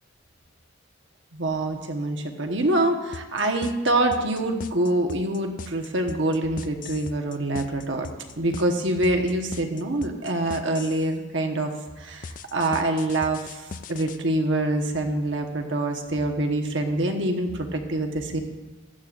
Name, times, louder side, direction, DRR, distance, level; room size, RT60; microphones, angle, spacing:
voice 1, 1.3-8.1 8.4-11.7 12.0-18.4, right 1 dB, 65° right, 4 dB, 1.2 m, -25 dB
sound 1, 3.1-11.1 12.2-14.2, left 4 dB, 40° left, 0.4 m, -38 dB
15.0 x 11.5 x 2.5 m, 1.1 s
head